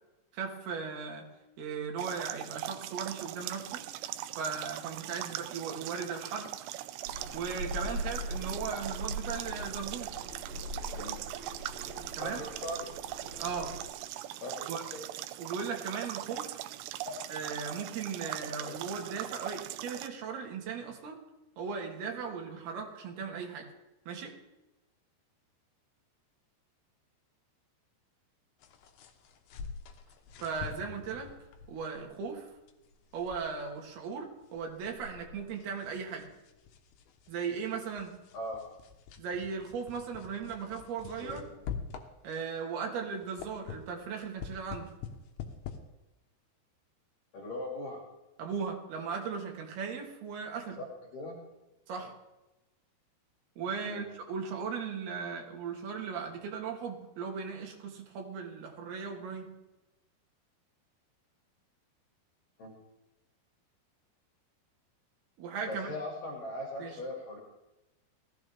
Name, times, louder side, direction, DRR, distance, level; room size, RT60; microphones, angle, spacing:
voice 1, 0.3-1.3 1.6-3.9 4.4-6.5 7.3-10.1 12.2-12.4 13.4-13.7 14.7-14.8 15.4-16.6 17.3-21.2 21.6-23.7 24.1-24.3 30.4-31.3 31.7-32.5 33.1-36.3 37.3-38.1 39.2-41.4 42.2-44.9 48.4-50.8 51.9-52.1 53.6-59.5 65.4-65.9 66.8-66.9, right 6 dB, 65° right, 2 dB, 3.6 m, -37 dB
sound 1, 2.0-20.1, right 14 dB, 80° right, 2.4 m, -41 dB
sound 2, 7.0-13.8, equal, 40° right, 2.6 m, -40 dB
voice 2, 10.9-11.3 12.2-12.9 14.4-15.0 17.1-17.2 18.2-18.3 18.6-18.7 38.3-38.6 41.2-41.6 47.3-48.0 50.8-50.9 51.1-51.4 51.9-52.1 53.8-54.1 62.6-62.7 65.7-67.4, left 1 dB, 50° left, -2 dB, 3.9 m, -40 dB
sound 3, 28.6-42.6 43.0-45.8, left 7 dB, 70° left, 2.7 m, -46 dB
18.5 x 15.0 x 3.6 m, 0.99 s
omnidirectional pair, 5.3 m